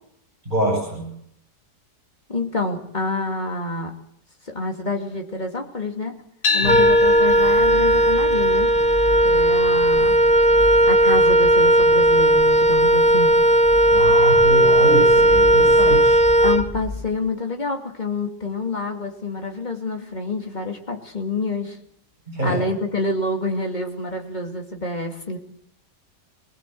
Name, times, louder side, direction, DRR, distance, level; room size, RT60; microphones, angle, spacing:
voice 1, 0.4-1.1 6.6-6.8 13.9-16.2 22.3-22.6, equal, 25° right, -3 dB, 7.9 m, -25 dB
voice 2, 2.3-3.9 4.5-6.2 6.5-8.7 9.2-10.2 10.9-13.3 16.4-21.8 22.4-25.4, left 3 dB, 25° left, 3 dB, 2.7 m, -27 dB
sound 1, 6.4-14.6, left 3 dB, 65° left, 1.9 m, -31 dB
Wind instrument woodwind instrument, 6.6-17.1, right 1 dB, 10° left, 0.4 m, -16 dB
21.5 x 20.0 x 7.8 m, 0.72 s
omnidirectional pair, 1.8 m